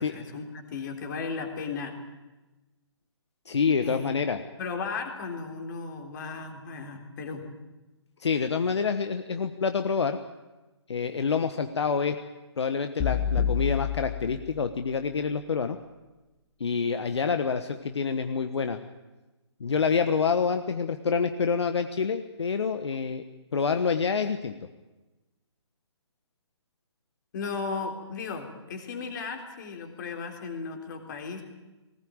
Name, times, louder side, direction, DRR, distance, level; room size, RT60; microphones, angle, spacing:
voice 1, 0.0-1.9 3.8-4.2 4.6-7.5 27.3-31.4, left 4 dB, 40° left, 4 dB, 3.7 m, -35 dB
voice 2, 3.5-4.4 8.2-10.2 10.9-12.1 12.6-15.8 16.6-18.8 19.6-23.2 23.5-24.5, left 5 dB, 70° left, 8 dB, 1.3 m, -27 dB
sound 1, 13.0-15.1, left 8 dB, 25° left, 2.2 m, -29 dB
19.5 x 19.0 x 8.8 m, 1.1 s
figure-of-eight pair, 140°, 15 cm